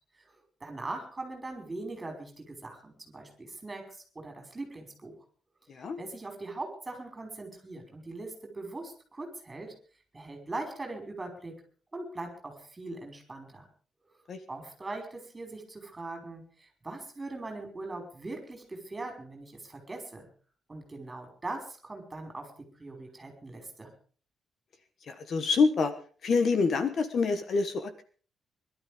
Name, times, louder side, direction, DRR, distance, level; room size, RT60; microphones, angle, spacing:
voice 1, 0.6-5.1 6.0-9.7 10.1-11.5 11.9-13.6 14.5-20.3 20.7-22.5 22.8-23.9, right 2 dB, 15° right, 3 dB, 5.2 m, -41 dB
voice 2, 25.1-25.9 26.2-28.0, left 4 dB, 50° left, 10 dB, 1.4 m, -26 dB
22.0 x 12.5 x 5.2 m, 0.41 s
wide cardioid pair, 170°, 0 cm